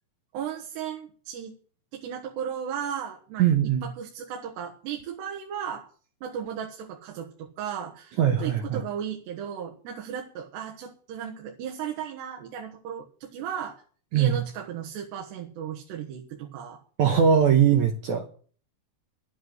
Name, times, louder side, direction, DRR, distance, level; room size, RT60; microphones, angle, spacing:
voice 1, 0.3-1.6 1.9-3.5 3.8-5.9 6.2-13.8 14.1-16.8, right 8 dB, 90° right, 0 dB, 3.5 m, -35 dB
voice 2, 3.4-3.9 8.2-8.8 14.1-14.4 17.0-18.3, right 8 dB, 65° right, 5 dB, 2.0 m, -21 dB
11.0 x 9.2 x 7.9 m, 0.43 s
omnidirectional pair, 4.7 m